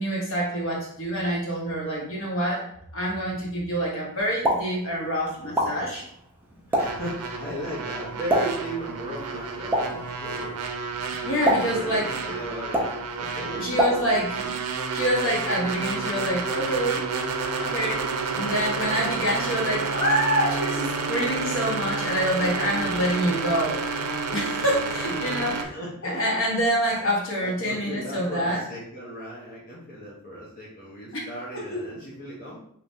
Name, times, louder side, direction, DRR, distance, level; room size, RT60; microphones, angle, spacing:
voice 1, 0.0-2.6 2.9-6.0 11.2-12.2 13.6-14.4 14.9-17.1 17.6-23.8 24.3-25.7 26.0-28.6 31.5-31.8, equal, 60° left, -3 dB, 1.2 m, -26 dB
Explosion, 4.2-14.5, equal, 10° right, 0.6 m, -30 dB
voice 2, 5.4-5.9 6.7-10.6 11.4-12.9 13.2-14.5 17.9-18.4 22.4-23.7 24.6-26.3 27.4-32.6, equal, 40° left, -6 dB, 0.8 m, -37 dB
sound 1, 6.8-25.7, right 4 dB, 85° right, 0.5 m, -30 dB
3.5 x 3.0 x 2.6 m, 0.68 s
head